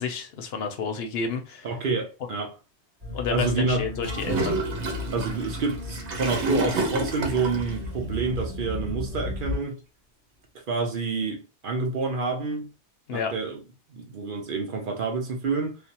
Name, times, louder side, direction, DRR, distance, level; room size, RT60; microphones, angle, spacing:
voice 1, 0.0-1.7 3.1-4.6 13.1-13.3, left 5 dB, 65° left, 0.8 m, -30 dB
voice 2, 1.6-2.5 3.3-3.8 5.1-9.8 10.7-12.7 13.1-13.6 13.9-15.8, right 4 dB, 55° right, 0.7 m, -28 dB
sound 1, 3.0-9.6, left 1 dB, 30° right, 1.9 m, -35 dB
Gurgling / Toilet flush, 4.0-7.8, right 3 dB, 75° right, 1.1 m, -29 dB
3.2 x 2.1 x 2.8 m
omnidirectional pair, 1.2 m